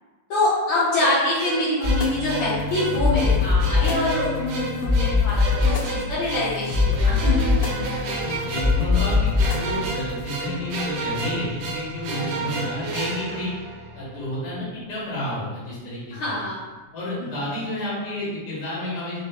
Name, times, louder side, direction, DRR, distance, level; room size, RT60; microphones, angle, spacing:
voice 1, 0.3-7.5 16.1-16.6, left 2 dB, 75° left, -11 dB, 2.4 m, -25 dB
sound 1, 0.9-14.2, right 3 dB, 80° right, 1.8 m, -32 dB
sound 2, 1.8-14.4, left 4 dB, 90° left, 2.0 m, -24 dB
voice 2, 8.2-13.5 13.9-16.3 16.9-19.2, left 1 dB, 50° left, -9 dB, 2.2 m, -30 dB
5.5 x 2.6 x 2.2 m, 1.2 s
omnidirectional pair, 3.5 m